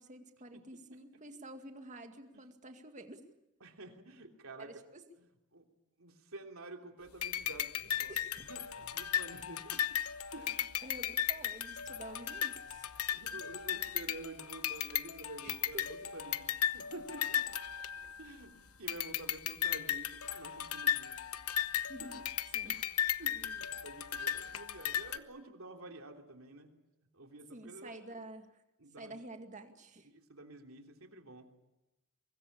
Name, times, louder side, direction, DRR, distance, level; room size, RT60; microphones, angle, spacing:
voice 1, 0.0-3.2 4.6-5.0 8.1-8.5 10.8-12.9 15.4-15.9 21.9-22.2 22.5-22.8 27.5-28.6 29.0-30.1, right 1 dB, 35° right, 6 dB, 2.1 m, -49 dB
voice 2, 3.6-4.7 5.5-5.6 6.0-8.1 8.5-9.8 10.3-10.8 13.1-17.4 18.2-18.5 18.8-21.2 22.0-22.2 22.6-22.8 23.2-26.7 27.1-28.0 28.8-29.1 30.1-31.5, right 2 dB, 70° right, 4 dB, 3.2 m, -49 dB
sound 1, 7.2-18.4 18.9-25.2, left 10 dB, 85° left, 1.0 m, -36 dB
24.5 x 20.5 x 8.7 m, 0.96 s
head